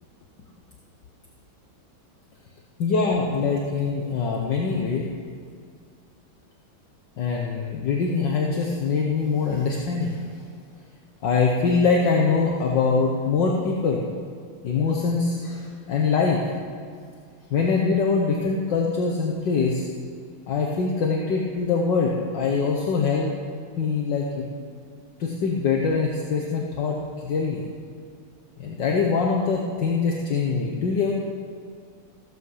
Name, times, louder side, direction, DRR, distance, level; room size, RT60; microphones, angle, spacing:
voice 1, 2.8-5.1 7.2-10.2 11.2-14.1 14.6-16.4 17.5-19.9 20.5-23.3 23.8-24.5 25.2-27.7 28.6-31.1, left 4 dB, 60° left, -1 dB, 1.8 m, -23 dB
15.5 x 14.0 x 5.6 m, 2.1 s
omnidirectional pair, 2.3 m